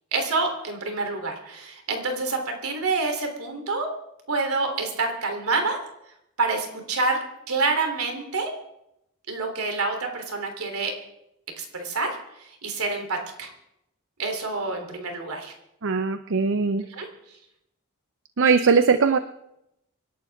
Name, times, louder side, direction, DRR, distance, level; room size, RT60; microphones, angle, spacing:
voice 1, 0.1-3.9 4.3-5.8 6.4-8.5 9.3-10.9 11.6-13.5 14.2-15.5 16.9-17.1, right 3 dB, 80° right, 4 dB, 3.3 m, -27 dB
voice 2, 15.8-16.9 18.4-19.2, right 5 dB, 60° right, 10 dB, 0.6 m, -20 dB
26.5 x 11.5 x 3.6 m, 0.81 s
head